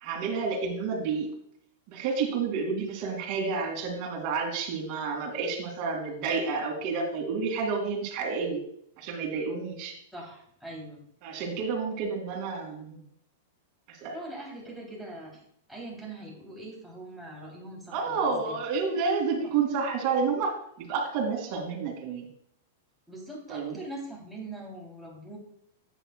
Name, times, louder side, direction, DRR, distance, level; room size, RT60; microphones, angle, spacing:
voice 1, 0.0-1.3 1.9-8.6 9.0-9.9 11.2-13.0 13.9-14.1 17.9-20.5 20.8-22.3 23.5-23.8, right 5 dB, 45° right, 1 dB, 2.6 m, -30 dB
voice 2, 10.1-11.0 14.1-15.4 15.7-18.6 19.4-19.5 23.1-25.4, right 1 dB, ahead, -4 dB, 3.3 m, -42 dB
10.0 x 9.3 x 2.4 m, 0.68 s
hypercardioid pair, 135°, 0 cm